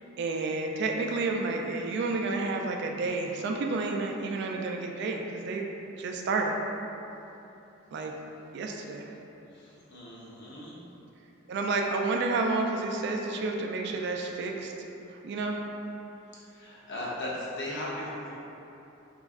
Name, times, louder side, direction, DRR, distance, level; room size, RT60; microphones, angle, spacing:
voice 1, 0.2-5.7 6.0-6.5 7.9-8.1 8.5-9.1 11.5-14.7 15.2-15.6, right 3 dB, 55° right, 2 dB, 0.3 m, -30 dB
voice 2, 9.5-10.8 16.3-18.3, left 1 dB, 60° left, -6 dB, 0.8 m, -38 dB
3.6 x 3.1 x 2.4 m, 2.9 s
head